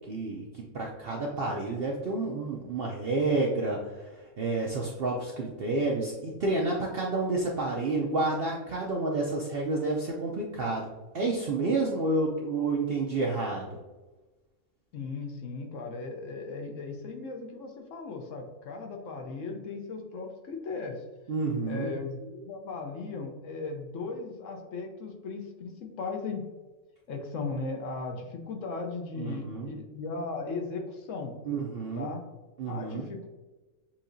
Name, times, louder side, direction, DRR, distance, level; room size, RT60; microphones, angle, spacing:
voice 1, 0.1-10.9 11.1-13.8 21.3-21.9 29.2-29.7 31.5-32.1 32.6-33.0, right 3 dB, 65° right, -1 dB, 0.6 m, -30 dB
voice 2, 14.9-21.0 21.7-26.4 27.1-31.3 32.0-32.2 32.7-33.3, left 4 dB, 65° left, 3 dB, 1.0 m, -37 dB
7.0 x 2.7 x 2.6 m, 1.2 s
omnidirectional pair, 1.5 m